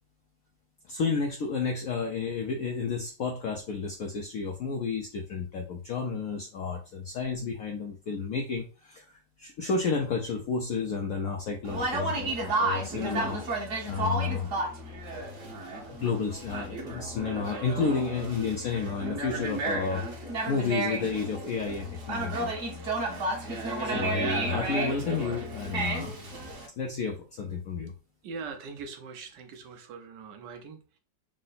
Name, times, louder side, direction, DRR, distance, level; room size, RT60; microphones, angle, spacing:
voice 1, 0.9-13.4 13.9-14.5 16.0-22.5 23.8-26.2 26.8-27.9, left 5 dB, 75° left, 2 dB, 0.8 m, -31 dB
Conversation, 11.6-26.7, right 2 dB, 50° right, 1.2 m, -32 dB
voice 2, 28.2-31.0, right 5 dB, 75° right, 5 dB, 1.2 m, -42 dB
3.7 x 2.1 x 3.9 m, 0.34 s
omnidirectional pair, 2.0 m